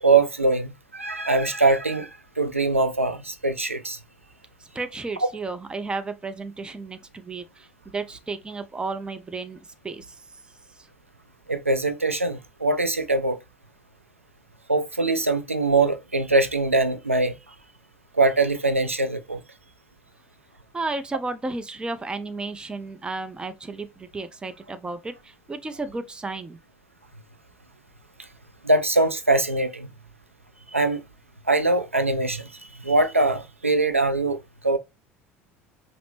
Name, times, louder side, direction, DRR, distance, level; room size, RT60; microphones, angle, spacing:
voice 1, 0.0-2.1 2.4-4.0 5.2-5.3 11.5-13.4 14.7-17.5 18.1-19.4 28.6-29.9 30.7-31.0 31.5-34.8, right 3 dB, 90° right, 0.4 m, -22 dB
voice 2, 4.8-7.4 7.9-9.6 9.8-10.0 20.7-25.1 25.5-26.6, right 3 dB, 15° right, 0.5 m, -32 dB
4.9 x 2.0 x 3.1 m
figure-of-eight pair, 65°, 7 cm